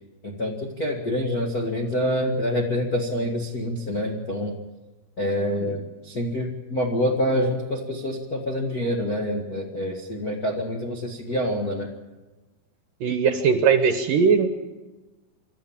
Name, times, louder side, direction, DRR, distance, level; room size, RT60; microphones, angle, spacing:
voice 1, 0.2-4.5 5.2-11.9, equal, 80° left, 0 dB, 0.8 m, -26 dB
voice 2, 13.0-14.5, right 6 dB, 70° right, 8 dB, 2.2 m, -20 dB
27.0 x 12.5 x 8.8 m, 1.2 s
omnidirectional pair, 5.2 m